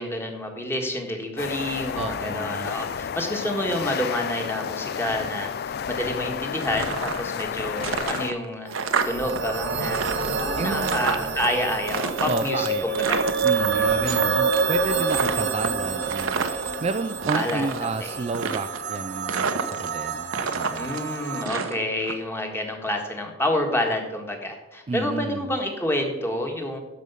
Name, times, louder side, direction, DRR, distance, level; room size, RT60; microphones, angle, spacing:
voice 1, 0.0-8.7 9.0-10.1 10.4-13.2 13.7-14.2 17.3-18.1 20.8-26.8, left 1 dB, 10° left, 2 dB, 1.6 m, -29 dB
sound 1, 1.4-8.3, left 7 dB, 50° left, 0.3 m, -31 dB
voice 2, 2.0-2.7 10.6-11.1 12.3-13.0 13.4-20.9 24.9-25.5, right 3 dB, 30° right, 9 dB, 0.3 m, -31 dB
sound 2, 6.6-7.5 7.8-9.4 9.7-11.5 11.9-14.2 14.5-14.8 15.1-16.7 17.1-17.9 18.3-19.0 19.3-20.0 20.3-22.1, right 5 dB, 80° right, 0.9 m, -29 dB
sound 3, 8.7-21.4, right 4 dB, 60° right, 1.3 m, -27 dB
12.5 x 5.3 x 6.9 m, 1.1 s
head